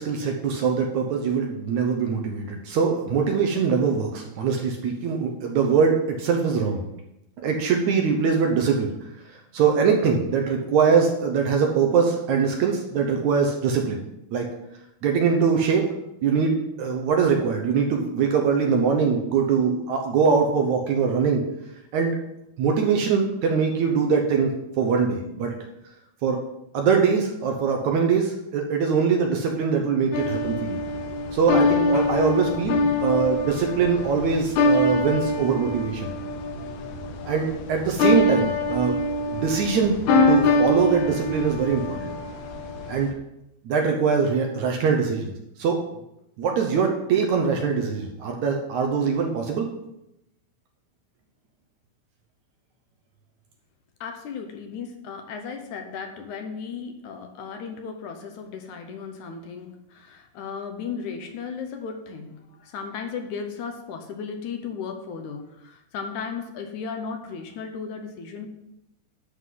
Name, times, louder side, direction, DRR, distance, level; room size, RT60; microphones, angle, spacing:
voice 1, 0.0-6.8 7.4-8.9 9.5-14.0 14.3-14.5 15.0-15.9 16.2-21.4 21.9-22.2 22.6-24.5 24.8-25.5 26.2-26.4 26.7-30.8 31.3-36.1 37.3-39.0 39.3-40.0 40.3-42.1 42.9-43.1 43.6-45.3 45.6-45.8 46.4-49.7, right 5 dB, 75° right, 3 dB, 1.7 m, -22 dB
sound 1, 30.1-43.1, left 2 dB, 90° left, 3.0 m, -24 dB
voice 2, 54.0-68.5, left 6 dB, 70° left, 5 dB, 1.9 m, -35 dB
11.5 x 3.9 x 7.6 m, 0.86 s
omnidirectional pair, 4.4 m